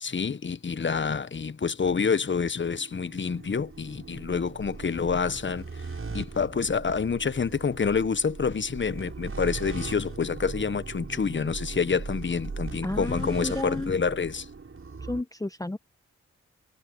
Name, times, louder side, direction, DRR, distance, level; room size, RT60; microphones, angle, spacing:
voice 1, 0.0-5.7 6.1-14.5, left 5 dB, 35° left, 1.3 m, -27 dB
sound 1, 2.5-15.2, right 4 dB, 40° right, 7.0 m, -39 dB
voice 2, 12.8-13.9 15.1-15.8, left 2 dB, 10° left, 1.0 m, -32 dB
supercardioid pair, 40°, 32 cm